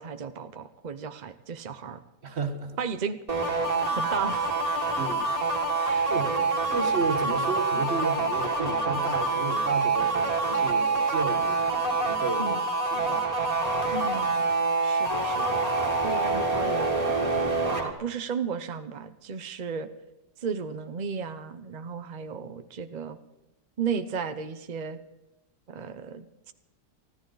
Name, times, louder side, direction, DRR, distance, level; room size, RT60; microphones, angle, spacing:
voice 1, 0.0-2.0 2.8-4.5 5.8-6.1 12.4-12.6 13.9-14.5 14.8-15.6 16.0-17.0 17.7-19.9 20.4-23.2 23.8-25.0 25.7-26.5, right 6 dB, 60° right, 11 dB, 0.4 m, -34 dB
voice 2, 2.2-2.8 5.0-5.3 6.1-6.3 6.7-11.6 12.0-12.6 12.9-13.3 13.6-13.8, right 4 dB, 40° right, 8 dB, 1.6 m, -32 dB
sound 1, 3.3-17.9, right 3 dB, 20° right, 2.0 m, -26 dB
24.5 x 14.0 x 3.9 m, 0.96 s
omnidirectional pair, 1.8 m